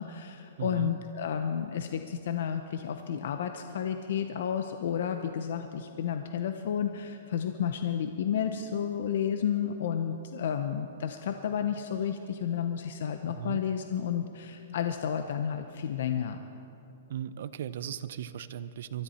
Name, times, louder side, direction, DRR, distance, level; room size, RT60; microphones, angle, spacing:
voice 1, 0.0-16.4, left 8 dB, 60° left, 7 dB, 0.7 m, -31 dB
voice 2, 0.6-1.0 13.3-13.6 17.1-19.0, right 10 dB, 60° right, 14 dB, 0.6 m, -37 dB
23.0 x 13.5 x 4.3 m, 2.8 s
hypercardioid pair, 160°, 0 cm